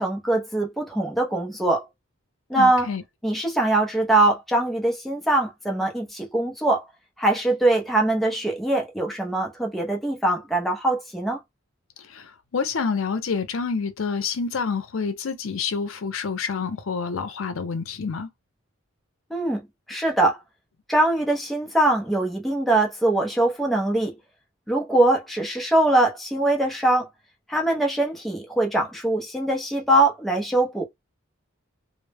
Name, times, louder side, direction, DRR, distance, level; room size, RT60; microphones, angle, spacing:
voice 1, 0.0-1.9 2.5-2.9 3.2-6.9 7.2-11.4 19.3-19.6 19.9-20.4 20.9-24.1 24.7-27.1 27.5-30.8, right 2 dB, ahead, 0.5 m, -22 dB
voice 2, 2.5-3.0 12.0-18.3, left 5 dB, 90° left, 0.5 m, -28 dB
2.0 x 2.0 x 3.3 m
head